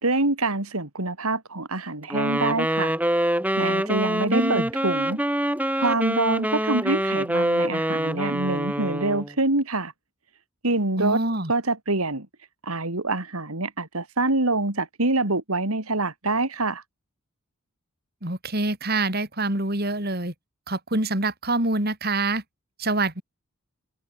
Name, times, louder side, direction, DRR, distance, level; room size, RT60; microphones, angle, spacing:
voice 1, 0.0-2.9 3.6-5.2 5.8-9.9 10.6-11.2 11.5-12.3 12.6-16.8, right 2 dB, 80° right, 3.4 m, -25 dB
Wind instrument woodwind instrument, 2.1-9.3, right 1 dB, 5° right, 4.3 m, -25 dB
voice 2, 4.3-4.7 11.0-11.5 18.2-20.3 20.7-22.4 22.8-23.2, right 2 dB, 45° right, 4.7 m, -25 dB
head